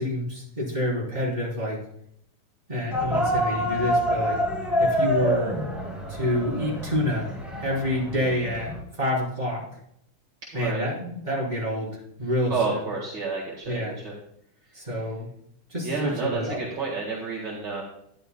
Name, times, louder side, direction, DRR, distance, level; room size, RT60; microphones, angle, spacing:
voice 1, 0.0-1.8 2.7-4.4 4.8-5.6 6.1-7.4 7.6-9.6 10.5-12.8 13.6-13.9 14.7-15.3 15.7-16.6, left 1 dB, 20° right, -5 dB, 3.9 m, -28 dB
sound 1, 2.9-8.8, equal, ahead, 2.3 m, -27 dB
voice 2, 10.5-10.9 12.5-14.1 15.8-17.8, right 4 dB, 55° right, -4 dB, 2.3 m, -30 dB
12.5 x 10.5 x 2.2 m, 0.73 s
omnidirectional pair, 2.4 m